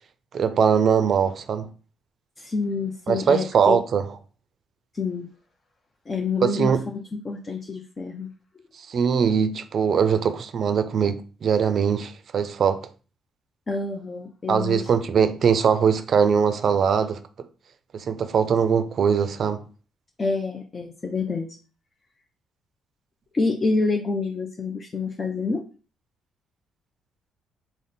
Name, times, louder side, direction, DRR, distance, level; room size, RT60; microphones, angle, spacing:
voice 1, 0.3-1.7 3.1-4.1 6.4-6.8 8.9-12.9 14.5-17.2 17.9-19.6, right 7 dB, 55° right, 0.4 m, -21 dB
voice 2, 2.4-3.8 4.9-5.3 6.1-6.7 7.1-8.3 13.7-15.0 20.2-21.6 23.3-25.6, left 3 dB, 35° left, 0.5 m, -27 dB
3.5 x 2.0 x 4.0 m
supercardioid pair, 70°, 0 cm